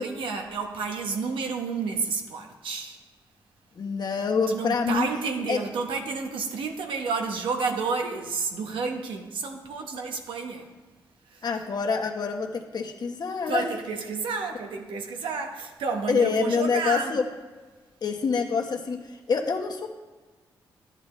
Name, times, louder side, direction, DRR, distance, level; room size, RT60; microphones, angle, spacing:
voice 1, 0.0-3.0 4.5-10.7 11.3-11.4 13.5-17.2, right 4 dB, 80° right, 1.2 m, -30 dB
voice 2, 3.8-5.1 5.5-5.6 11.4-13.6 16.1-17.2 18.0-19.9, left 5 dB, 55° left, 1.3 m, -26 dB
11.5 x 8.9 x 3.3 m
cardioid pair, 55°, 8 cm